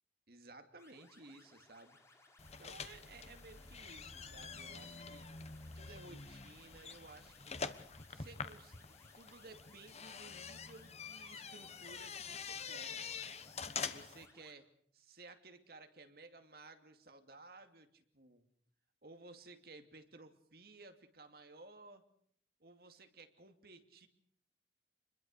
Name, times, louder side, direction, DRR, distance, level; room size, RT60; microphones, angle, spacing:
voice 1, 0.3-2.0 2.6-5.3 5.7-7.6 8.1-13.2 13.9-18.5 19.0-22.0 22.6-24.1, right 3 dB, 55° right, 7 dB, 2.6 m, -57 dB
sound 1, 0.8-14.5, left 2 dB, 15° left, 3.7 m, -65 dB
sound 2, 2.4-14.3, left 5 dB, 35° left, 1.3 m, -46 dB
27.5 x 21.5 x 6.7 m, 0.64 s
head